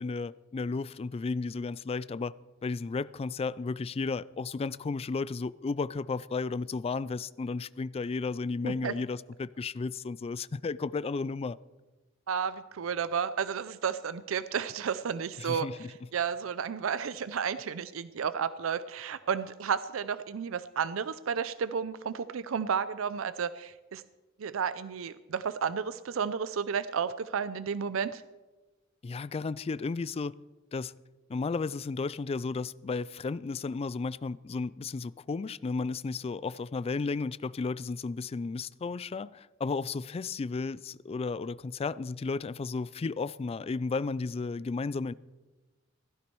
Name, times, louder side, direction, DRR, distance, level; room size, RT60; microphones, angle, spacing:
voice 1, 0.0-2.3 2.6-11.6 15.4-15.9 29.0-30.3 30.7-30.9 31.3-45.1, left 4 dB, 30° left, 0.3 m, -33 dB
voice 2, 8.6-8.9 12.3-15.9 16.1-24.0 24.4-28.2, right 7 dB, 80° right, 0.5 m, -32 dB
16.0 x 13.0 x 4.6 m
head